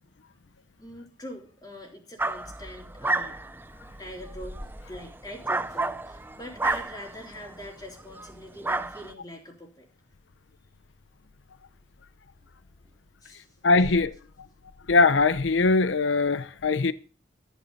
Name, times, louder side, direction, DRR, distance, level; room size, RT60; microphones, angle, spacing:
voice 1, 0.8-3.4 4.0-4.6 4.9-9.9 13.2-13.5, left 1 dB, 20° left, 3.4 m, -43 dB
sound 1, 2.2-7.7 8.1-8.3 8.6-9.1, right 2 dB, 10° right, 0.5 m, -31 dB
sound 2, 4.1-5.9 6.6-7.3 11.8-11.9 12.3-12.5 12.9-13.0 13.3-13.4 13.7-14.1, equal, 30° right, 2.6 m, -46 dB
voice 2, 13.6-14.1 14.9-16.9, left 3 dB, 90° left, 0.7 m, -21 dB
14.0 x 9.2 x 4.1 m
head